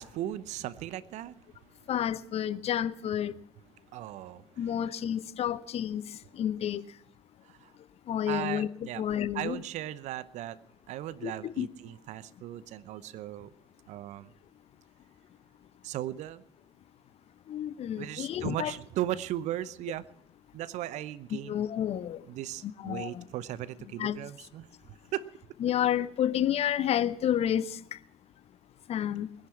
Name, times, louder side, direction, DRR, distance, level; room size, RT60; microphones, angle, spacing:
voice 1, 0.0-1.4 3.9-4.7 7.4-7.7 8.3-9.1 9.3-10.6 10.9-13.5 13.9-14.3 15.8-16.4 18.0-20.1 20.5-21.6 22.3-25.3, right 13 dB, 60° right, 0.8 m, -37 dB
voice 2, 1.9-3.3 4.6-6.0 6.3-6.8 8.1-8.7 9.0-9.6 11.2-11.7 17.5-18.7 21.5-22.2 22.6-23.2 24.0-24.2 25.6-28.0 28.9-29.3, left 10 dB, 50° left, 0.7 m, -30 dB
20.5 x 10.5 x 5.9 m
figure-of-eight pair, 50°, 14 cm